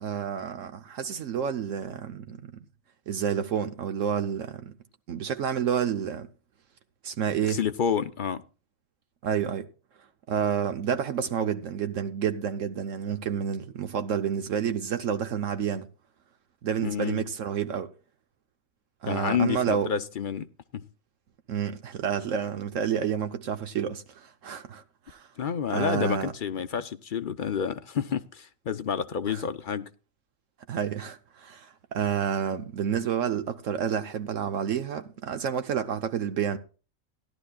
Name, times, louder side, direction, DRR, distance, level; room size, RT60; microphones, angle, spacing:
voice 1, 0.0-2.5 3.1-4.7 5.1-6.3 7.0-7.6 9.2-9.7 10.3-15.9 16.6-17.9 19.0-19.9 21.5-25.3 25.7-26.3 29.3-29.4 30.7-36.6, right 8 dB, 70° right, 1.1 m, -29 dB
voice 2, 7.4-8.4 16.8-17.3 19.1-20.9 25.4-29.9, left 7 dB, 50° left, 0.7 m, -29 dB
17.5 x 11.5 x 2.3 m
omnidirectional pair, 1.4 m